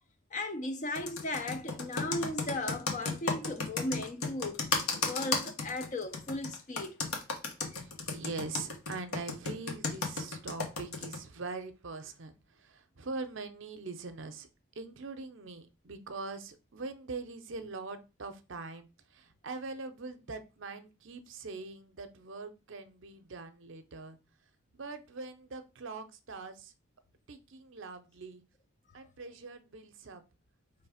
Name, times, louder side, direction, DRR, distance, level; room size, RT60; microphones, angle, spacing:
voice 1, 0.3-4.6 5.0-7.0, left 2 dB, 35° left, 0.4 m, -36 dB
Computer keyboard, 0.9-11.2, left 4 dB, 85° left, 1.1 m, -33 dB
voice 2, 7.8-14.5 14.8-24.2 24.7-26.7 27.3-28.4 28.9-30.2, right 3 dB, 55° right, 0.6 m, -42 dB
3.4 x 3.1 x 4.8 m
head